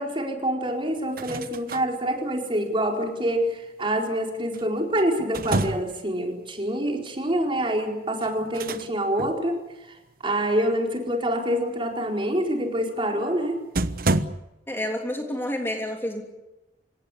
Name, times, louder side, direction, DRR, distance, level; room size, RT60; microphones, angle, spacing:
voice 1, 0.0-10.0 10.2-13.6, right 1 dB, 30° right, 1 dB, 4.4 m, -26 dB
sound 1, 1.0-1.9 4.5-6.1 8.2-8.9 9.2-9.4 13.2-13.3 13.7-14.3, right 2 dB, 55° right, 1.0 m, -28 dB
voice 2, 14.7-16.2, left 1 dB, 15° left, 2 dB, 3.0 m, -29 dB
28.5 x 17.0 x 8.5 m, 1.0 s
head